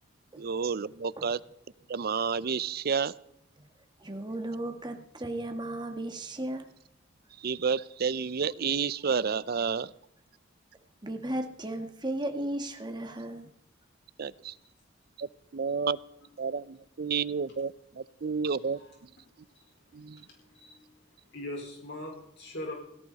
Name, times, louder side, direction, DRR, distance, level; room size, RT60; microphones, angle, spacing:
voice 1, 0.4-1.4 1.9-3.1 7.4-9.9 14.2-14.5 15.2-15.3 15.5-16.0 16.4-18.8 19.9-20.2, right 6 dB, 50° right, 19 dB, 0.5 m, -30 dB
voice 2, 4.0-6.6 11.0-13.5, right 1 dB, 20° right, 5 dB, 1.8 m, -35 dB
voice 3, 20.3-20.9 21.3-22.8, left 1 dB, 60° left, 0 dB, 4.7 m, -41 dB
17.5 x 16.5 x 4.1 m, 0.80 s
head